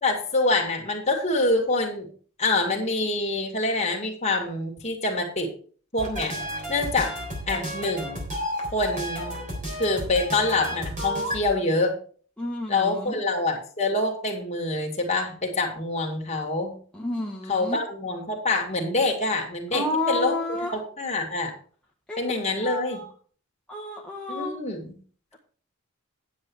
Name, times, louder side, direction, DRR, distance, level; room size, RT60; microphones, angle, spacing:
voice 1, 0.0-2.1 2.4-5.5 5.9-6.3 6.7-7.1 7.5-8.2 8.7-9.4 9.8-12.0 12.7-16.7 17.5-20.4 20.7-21.5 22.2-23.0 24.3-24.9, left 2 dB, 30° left, 1 dB, 2.2 m, -26 dB
sound 1, 6.0-11.5, equal, 35° right, 3.6 m, -32 dB
voice 2, 12.4-13.2 16.9-17.8 19.7-20.7 22.1-22.3 22.6-23.1 23.7-24.6, left 2 dB, 5° left, -2 dB, 1.0 m, -30 dB
9.8 x 7.8 x 4.7 m, 0.43 s
head